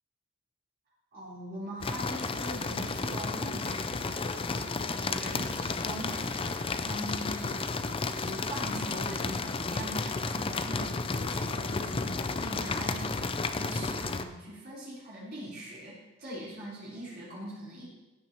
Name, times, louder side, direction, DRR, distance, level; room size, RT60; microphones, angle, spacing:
voice 1, 1.1-17.8, right 1 dB, 55° right, -10 dB, 4.1 m, -42 dB
sound 1, 1.8-14.3, left 3 dB, 30° left, 0.5 m, -32 dB
16.0 x 9.0 x 3.1 m, 1.1 s
head